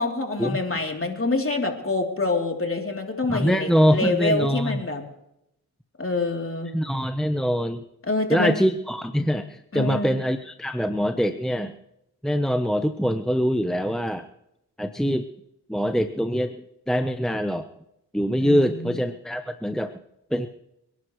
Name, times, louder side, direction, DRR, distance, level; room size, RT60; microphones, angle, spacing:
voice 1, 0.0-5.0 6.0-6.7 8.1-8.6 9.7-10.2 18.4-19.0, left 2 dB, 30° left, 2 dB, 3.2 m, -26 dB
voice 2, 3.3-4.8 6.7-7.8 8.3-11.7 12.2-14.3 14.8-15.3 15.7-16.6 16.9-17.7 18.1-19.9 20.3-20.5, equal, ahead, 7 dB, 0.9 m, -24 dB
28.0 x 11.0 x 3.2 m, 0.81 s
cardioid pair, 50°, 41 cm